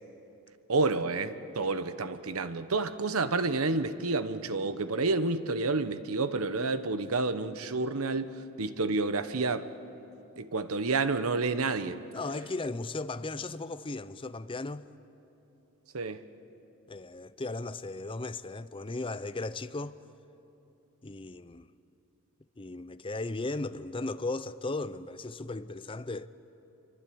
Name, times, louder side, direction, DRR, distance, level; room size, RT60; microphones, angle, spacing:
voice 1, 0.7-9.7 10.4-12.0 15.9-16.2, right 3 dB, 75° right, 1.0 m, -29 dB
voice 2, 12.1-14.9 16.9-20.0 21.0-21.7 22.6-26.3, left 2 dB, 25° left, 0.6 m, -36 dB
26.0 x 24.0 x 8.6 m
head